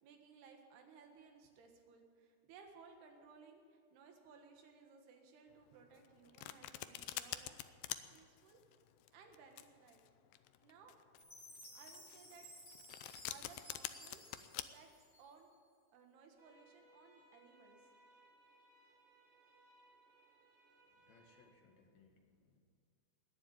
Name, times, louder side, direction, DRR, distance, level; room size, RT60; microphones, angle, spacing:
voice 1, 0.0-8.6 9.1-10.0 10.6-11.0 11.8-12.5 13.3-14.2 14.5-14.9 15.2-15.5 15.9-17.8, right 5 dB, 85° right, 3 dB, 3.6 m, -61 dB
Domestic sounds home sounds, 5.9-14.6, left 14 dB, 80° left, 2.1 m, -46 dB
Chime, 11.2-15.5, left 1 dB, 25° left, 3.5 m, -57 dB
sound 1, 16.4-21.4, right 1 dB, 60° right, 5.0 m, -67 dB
voice 2, 20.9-22.6, left 4 dB, 55° left, 2 dB, 2.6 m, -68 dB
20.5 x 7.3 x 9.1 m, 2.1 s
omnidirectional pair, 4.5 m